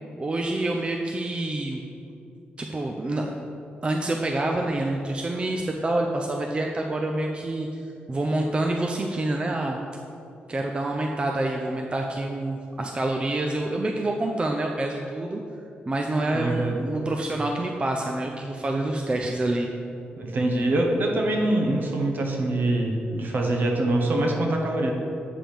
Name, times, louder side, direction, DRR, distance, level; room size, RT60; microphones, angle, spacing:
voice 1, 0.2-1.8 2.6-3.4 3.8-7.7 8.1-9.8 10.5-15.4 15.9-19.7, right 2 dB, 30° right, 1 dB, 0.5 m, -27 dB
voice 2, 16.3-16.8 20.2-24.9, right 1 dB, 60° right, 1 dB, 1.1 m, -24 dB
7.5 x 5.0 x 5.1 m, 2.6 s
cardioid pair, 95°, 4 cm